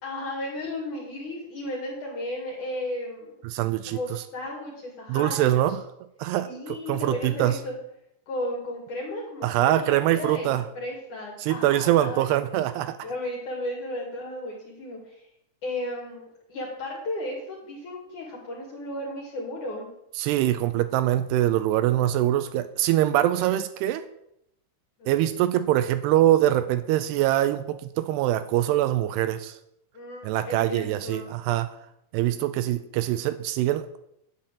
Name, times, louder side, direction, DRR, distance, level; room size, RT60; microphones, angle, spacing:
voice 1, 0.0-3.4 3.9-5.6 6.5-7.7 8.3-12.4 13.0-15.3 15.6-19.9 25.0-25.1 29.9-31.3, left 1 dB, 50° left, -2 dB, 3.2 m, -34 dB
voice 2, 3.4-4.2 5.1-5.8 6.2-6.5 6.9-7.6 9.4-10.7 11.4-13.0 20.2-24.0 25.1-29.6 30.2-31.7 32.1-34.0, right 13 dB, 85° right, 12 dB, 2.4 m, -23 dB
10.5 x 6.2 x 8.4 m, 0.80 s
omnidirectional pair, 5.3 m